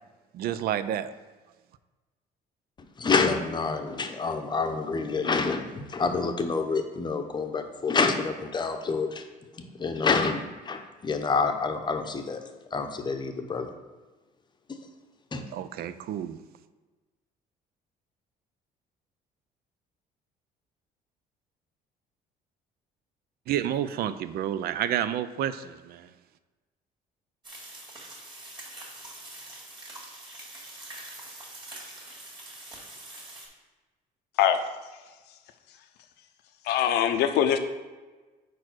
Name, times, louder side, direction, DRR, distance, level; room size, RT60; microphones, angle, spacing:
voice 1, 0.3-1.1 15.5-16.4 23.5-26.1, right 10 dB, 65° right, 13 dB, 0.4 m, -30 dB
voice 2, 3.0-9.2 9.6-12.4 12.7-13.7 14.7-14.8 15.3-15.4, left 4 dB, 25° left, 5 dB, 0.7 m, -27 dB
sound 1, 27.4-33.5, right 1 dB, 25° right, 2.2 m, -44 dB
voice 3, 36.6-37.6, left 10 dB, 80° left, 8 dB, 0.6 m, -22 dB
4.8 x 4.6 x 6.0 m, 1.3 s
cardioid pair, 110°, 17 cm